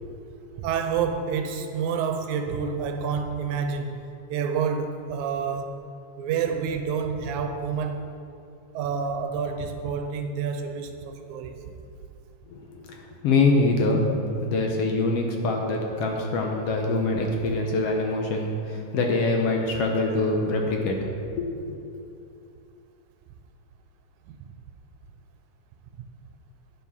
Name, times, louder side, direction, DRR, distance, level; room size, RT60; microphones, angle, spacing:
voice 1, 0.6-5.8 6.2-8.0 8.7-11.6 17.2-17.3 24.3-24.4, right 6 dB, 90° right, 6 dB, 2.2 m, -28 dB
voice 2, 12.5-13.0 13.2-14.1 14.4-21.0 21.3-21.8, left 3 dB, 65° left, 1 dB, 1.7 m, -24 dB
10.0 x 7.3 x 5.4 m, 2.6 s
omnidirectional pair, 3.3 m